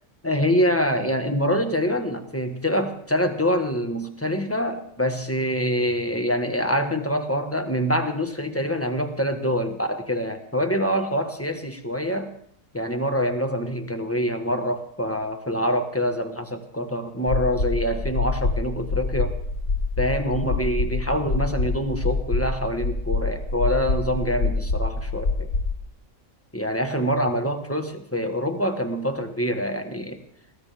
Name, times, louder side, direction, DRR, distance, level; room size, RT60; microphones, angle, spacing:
voice 1, 0.2-12.3 12.7-19.4 20.0-25.5 26.5-30.2, equal, 10° left, 5 dB, 1.3 m, -25 dB
sound 1, 17.3-25.7, left 3 dB, 65° left, 1.9 m, -26 dB
21.0 x 16.5 x 3.5 m, 0.64 s
omnidirectional pair, 1.4 m